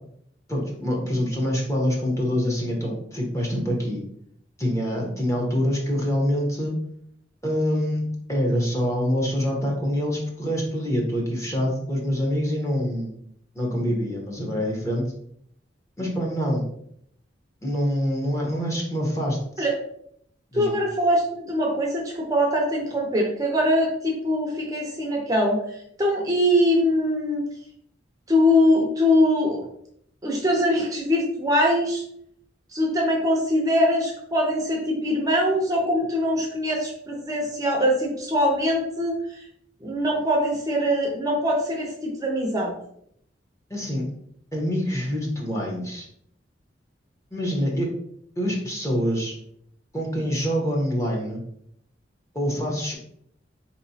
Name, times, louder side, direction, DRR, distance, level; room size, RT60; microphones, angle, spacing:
voice 1, 0.5-4.0 4.6-6.7 7.4-13.1 13.5-15.1 16.0-16.7 17.6-19.7 20.5-20.8 43.7-44.1 44.5-46.1 47.3-47.9 48.4-49.4 49.9-51.4 52.3-52.9, equal, 15° left, -1 dB, 0.8 m, -25 dB
voice 2, 20.5-27.4 28.3-29.7 30.2-32.0 32.7-39.4 39.8-42.7, equal, 20° right, -1 dB, 0.5 m, -22 dB
4.4 x 2.9 x 2.7 m, 0.70 s
head